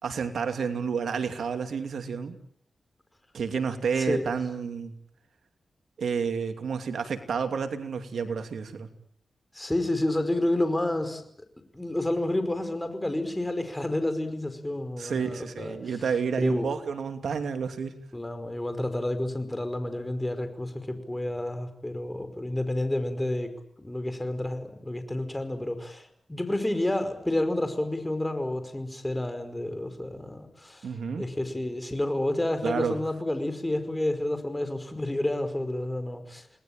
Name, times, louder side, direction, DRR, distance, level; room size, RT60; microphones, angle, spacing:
voice 1, 0.0-2.4 3.3-4.9 6.0-8.9 15.0-18.0 30.8-31.2 32.6-33.0, right 6 dB, 85° right, 7 dB, 2.8 m, -30 dB
voice 2, 4.0-4.3 9.5-11.2 11.7-16.0 16.4-16.7 18.1-30.9 31.2-36.4, left 1 dB, 15° left, 9 dB, 5.3 m, -30 dB
29.0 x 20.0 x 9.0 m, 0.68 s
cardioid pair, 60°, 0 cm